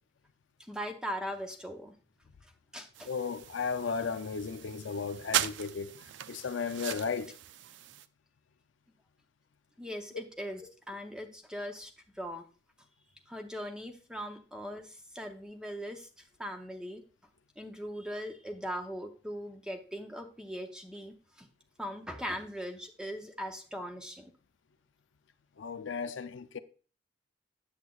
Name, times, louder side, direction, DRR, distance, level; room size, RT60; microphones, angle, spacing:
voice 1, 0.6-1.9 2.7-3.1 9.8-11.9 12.2-12.4 13.3-16.1 16.4-17.0 17.6-21.5 21.8-24.3, equal, 5° right, 0.6 m, -40 dB
sound 1, 2.9-8.1, right 11 dB, 65° right, 0.3 m, -38 dB
voice 2, 3.1-5.9 6.3-7.3 10.1-10.2 25.6-26.6, left 5 dB, 75° left, 0.5 m, -35 dB
8.0 x 7.2 x 2.3 m
head